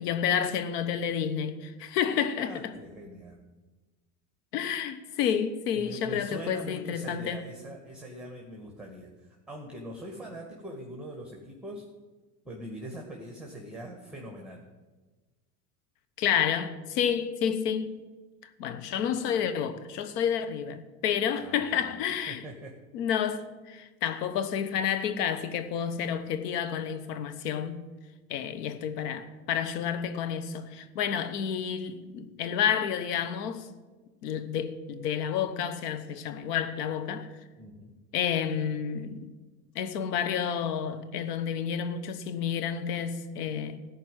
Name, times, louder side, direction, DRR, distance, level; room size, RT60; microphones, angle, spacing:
voice 1, 0.0-2.7 4.5-7.4 16.2-18.0 18.6-22.4 22.9-27.9 28.3-33.7 34.2-37.3 38.1-39.3 39.7-43.8, left 8 dB, 80° left, 1.1 m, -30 dB
voice 2, 2.4-3.4 5.2-5.3 5.7-11.9 12.4-14.6 21.4-22.0 22.3-22.8 37.6-37.9, right 1 dB, ahead, 2.1 m, -42 dB
14.0 x 5.2 x 9.4 m
hypercardioid pair, 85°, 47 cm